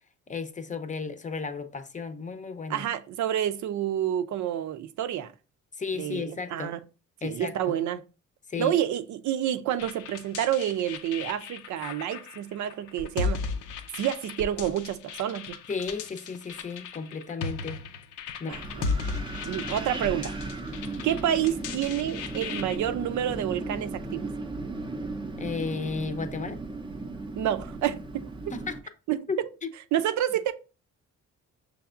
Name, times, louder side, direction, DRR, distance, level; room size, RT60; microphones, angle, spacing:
voice 1, 0.3-2.9 5.8-6.7 7.2-7.6 8.5-8.8 15.7-17.8 18.4-18.6 25.4-26.6 28.5-28.8 29.3-29.7, left 4 dB, 25° left, 0.6 m, -34 dB
voice 2, 2.7-5.3 6.0-6.8 7.2-8.0 8.6-13.4 13.9-15.6 18.5-18.8 19.4-20.3 21.0-24.3 27.4-28.3 29.1-29.2 29.9-30.5, right 11 dB, 70° right, 0.6 m, -29 dB
sound 1, 9.8-22.8, left 4 dB, 85° left, 0.7 m, -36 dB
Wind, 18.5-28.8, right 3 dB, 15° right, 0.6 m, -36 dB
5.9 x 3.4 x 2.4 m
cardioid pair, 90°, 30 cm